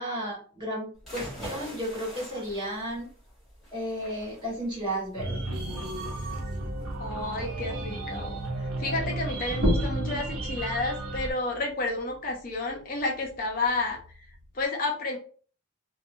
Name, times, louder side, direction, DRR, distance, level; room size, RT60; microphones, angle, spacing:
voice 1, 0.0-3.1 3.7-5.4, equal, 20° right, -7 dB, 1.4 m, -33 dB
sound 1, 1.0-10.3, equal, ahead, 1.2 m, -46 dB
sound 2, 5.2-11.3, right 2 dB, 85° right, 0.5 m, -33 dB
voice 2, 7.0-8.4 8.8-14.0 14.5-15.2, left 3 dB, 40° left, 1 dB, 0.6 m, -31 dB
sound 3, 9.4-14.7, equal, 55° right, 1.0 m, -34 dB
2.6 x 2.2 x 2.6 m, 0.42 s
head